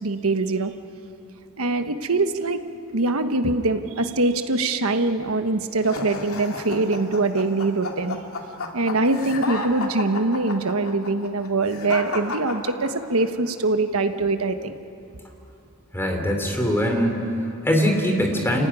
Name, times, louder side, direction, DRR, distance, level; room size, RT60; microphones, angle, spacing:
voice 1, 0.0-0.7 1.6-2.6 2.9-8.2 8.7-14.8, right 2 dB, 80° right, 8 dB, 1.3 m, -23 dB
sound 1, 5.8-13.3, left 3 dB, 85° left, 2.6 m, -32 dB
voice 2, 15.9-18.7, equal, 10° left, 2 dB, 3.8 m, -22 dB
29.0 x 16.0 x 10.0 m, 2.8 s
head